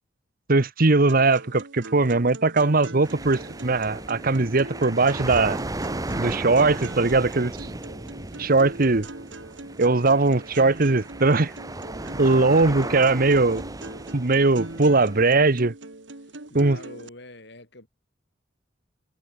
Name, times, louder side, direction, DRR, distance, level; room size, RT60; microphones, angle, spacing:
voice 1, 0.5-5.6 6.2-7.5 8.4-9.1 9.8-11.5 12.2-13.6 14.1-15.7 16.5-16.8, right 3 dB, 50° right, 1.1 m, -20 dB
sound 1, 1.1-17.1, right 2 dB, 85° right, 2.1 m, -41 dB
sound 2, 3.0-15.2, right 2 dB, 20° right, 1.4 m, -35 dB
voice 2, 11.9-13.7 16.2-17.9, left 2 dB, 65° left, 7.6 m, -44 dB
head